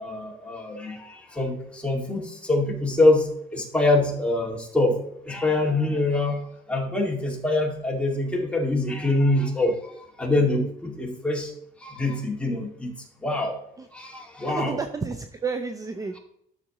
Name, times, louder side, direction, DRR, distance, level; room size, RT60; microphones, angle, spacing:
voice 1, 0.0-5.0 5.2-6.4 6.7-11.5 11.8-12.9 13.2-13.5 13.9-14.8, left 2 dB, 5° left, -1 dB, 2.2 m, -24 dB
voice 2, 14.5-16.1, right 4 dB, 20° right, 8 dB, 0.6 m, -31 dB
12.0 x 6.7 x 3.0 m, 0.74 s
cardioid pair, 110°, 17 cm